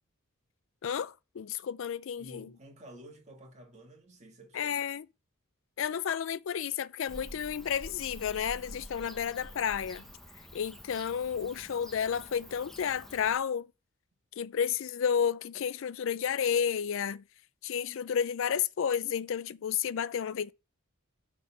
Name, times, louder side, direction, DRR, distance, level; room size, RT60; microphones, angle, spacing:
voice 1, 0.8-2.5 4.5-5.1 5.8-10.1 10.5-13.7 14.4-17.2 17.6-20.5, left 8 dB, 60° left, 0.4 m, -31 dB
voice 2, 2.2-4.7 9.0-9.2, equal, 30° right, 1.9 m, -51 dB
Bird / Cricket, 7.1-13.4, equal, ahead, 0.7 m, -48 dB
9.4 x 3.8 x 5.7 m
head